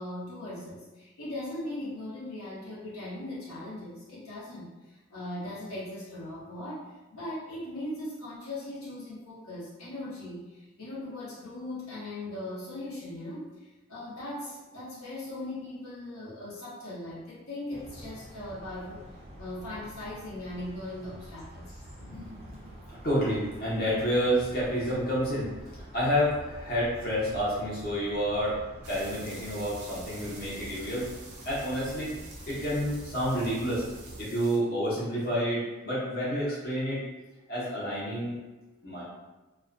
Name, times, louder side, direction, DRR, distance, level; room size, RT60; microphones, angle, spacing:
voice 1, 0.0-4.7 5.1-13.5 13.9-19.0 19.4-21.8, left 1 dB, 75° left, -8 dB, 0.8 m, -39 dB
sound 1, 17.7-34.2, right 1 dB, 25° right, 0.4 m, -47 dB
voice 2, 22.0-28.6 28.9-31.1 31.4-32.1 32.5-33.8 34.2-37.0 37.5-38.4 38.8-39.0, equal, 45° left, -9 dB, 0.8 m, -29 dB
sound 2, 28.8-34.6, right 3 dB, 90° right, 0.5 m, -48 dB
2.4 x 2.1 x 2.4 m, 1.1 s
head